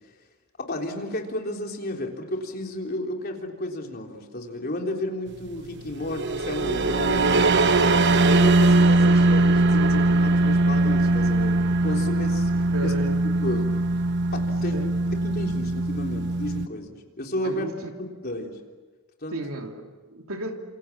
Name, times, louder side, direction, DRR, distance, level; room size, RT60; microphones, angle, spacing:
voice 1, 0.7-8.0 8.3-12.5 12.8-12.9 13.4-13.7 14.3-17.7 18.0-18.6 19.2-19.4, left 1 dB, 45° left, 1 dB, 3.7 m, -32 dB
sound 1, 6.0-16.7, right 2 dB, 50° right, 0.9 m, -21 dB
voice 2, 12.7-13.2 14.7-14.9 17.4-17.9 19.3-20.5, right 1 dB, 75° right, 3 dB, 3.0 m, -34 dB
30.0 x 27.0 x 7.3 m, 1.3 s
head